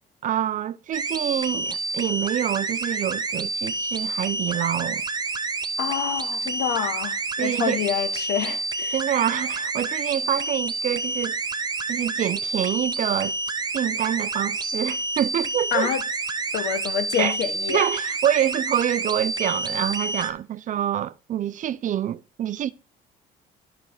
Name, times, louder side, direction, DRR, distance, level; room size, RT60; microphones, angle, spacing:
voice 1, 0.2-5.0 7.4-7.8 8.9-11.4 11.9-13.3 13.7-15.9 17.2-17.3 17.7-22.7, right 10 dB, 50° right, 0.6 m, -26 dB
sound 1, 0.9-20.3, right 3 dB, 25° right, 0.9 m, -29 dB
voice 2, 5.8-8.9 15.7-16.0 16.5-17.9, left 9 dB, 75° left, 1.5 m, -27 dB
10.5 x 6.0 x 4.9 m
cardioid pair, 110°, 17 cm